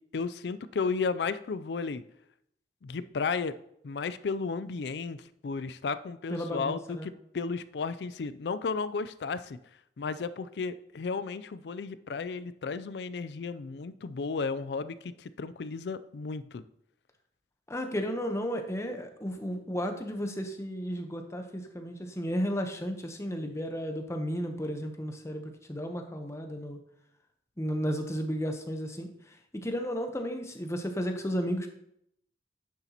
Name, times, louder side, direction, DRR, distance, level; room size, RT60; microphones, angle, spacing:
voice 1, 0.1-2.0 2.8-3.6 3.8-9.6 10.0-16.6, left 4 dB, 65° left, 14 dB, 0.4 m, -34 dB
voice 2, 6.3-7.1 17.7-26.8 27.6-31.7, equal, 15° left, 5 dB, 0.9 m, -33 dB
9.9 x 6.8 x 2.9 m, 0.74 s
head